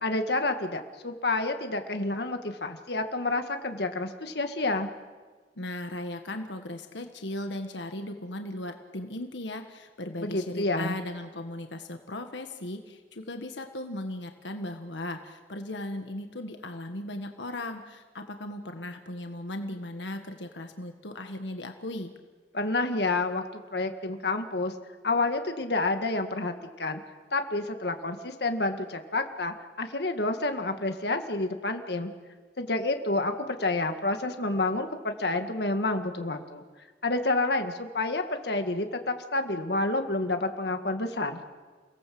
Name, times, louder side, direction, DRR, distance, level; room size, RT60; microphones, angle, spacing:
voice 1, 0.0-4.9 10.2-10.9 22.5-23.4 23.7-24.7 25.0-27.0 27.3-32.1 32.6-36.6 37.0-41.4, left 2 dB, 65° left, 6 dB, 1.9 m, -29 dB
voice 2, 5.6-22.1, left 1 dB, 90° left, 6 dB, 1.6 m, -37 dB
29.0 x 18.5 x 7.8 m, 1.4 s
head